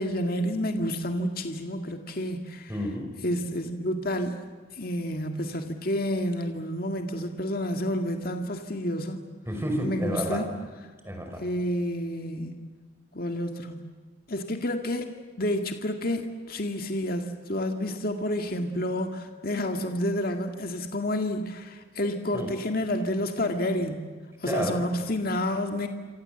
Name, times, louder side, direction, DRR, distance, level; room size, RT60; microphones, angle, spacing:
voice 1, 0.0-2.7 3.2-4.4 4.8-9.2 9.8-10.4 11.4-12.7 13.1-13.8 14.3-15.1 15.4-24.1 24.4-25.9, left 1 dB, 50° left, 5 dB, 2.0 m, -29 dB
voice 2, 2.7-3.1 9.4-10.4 11.0-11.4 22.3-22.5 24.4-24.8, equal, 15° right, 3 dB, 5.5 m, -30 dB
27.0 x 26.5 x 7.9 m, 1.5 s
head